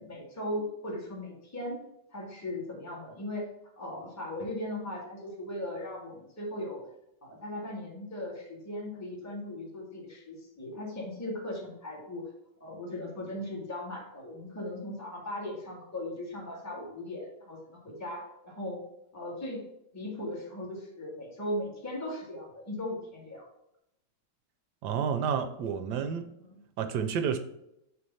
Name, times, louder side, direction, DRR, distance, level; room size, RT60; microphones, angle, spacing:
voice 1, 0.0-1.8 2.1-3.5 3.8-6.8 7.2-12.3 12.6-18.8 19.1-19.6 19.9-23.4 26.4-26.6, left 1 dB, 10° left, 1.6 m, -38 dB
voice 2, 24.8-26.3 26.8-27.4, right 7 dB, 70° right, 1.1 m, -30 dB
7.8 x 3.2 x 5.5 m
omnidirectional pair, 2.3 m